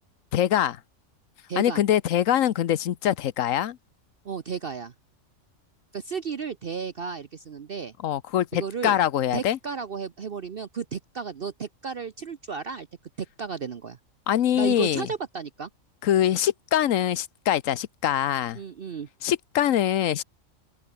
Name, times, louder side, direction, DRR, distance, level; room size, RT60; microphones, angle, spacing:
voice 1, 0.3-0.8 1.6-3.8 8.0-9.6 14.3-15.1 16.0-18.6 19.2-20.2, left 11 dB, 75° left, 1.2 m, -23 dB
voice 2, 1.5-1.8 4.2-4.9 5.9-7.9 8.5-9.0 9.3-12.9 13.2-14.0 14.5-15.7 18.6-19.1, right 6 dB, 50° right, 1.0 m, -33 dB
omnidirectional pair, 1.4 m